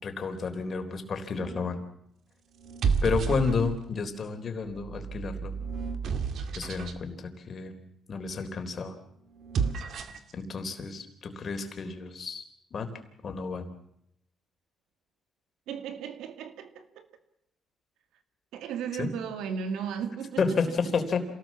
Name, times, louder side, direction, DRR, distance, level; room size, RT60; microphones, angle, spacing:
voice 1, 0.0-1.8 3.0-5.5 6.5-7.7 8.1-9.0 10.3-12.4 12.7-12.9 13.2-13.7 19.0-19.1 20.4-21.2, left 5 dB, 45° left, 3.7 m, -31 dB
sound 1, 1.3-1.8 2.6-4.0 4.7-7.0 9.3-10.3, right 5 dB, 65° right, 2.1 m, -31 dB
voice 2, 15.7-17.1 18.5-20.6, right 7 dB, 90° right, 2.3 m, -35 dB
27.5 x 18.5 x 7.4 m
cardioid pair, 90°, 0 cm